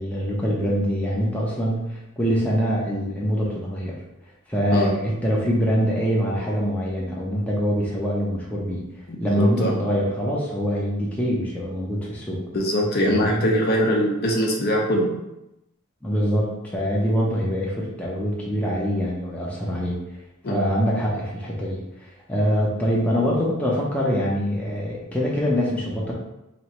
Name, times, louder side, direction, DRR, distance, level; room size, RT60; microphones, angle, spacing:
voice 1, 0.0-4.0 4.5-8.8 9.2-12.4 13.0-13.5 16.0-20.0 20.5-26.1, equal, 5° left, -5 dB, 0.6 m, -24 dB
voice 2, 9.1-9.8 12.5-15.1 20.4-20.6, equal, 45° left, -1 dB, 0.7 m, -22 dB
3.0 x 2.7 x 4.2 m, 0.91 s
head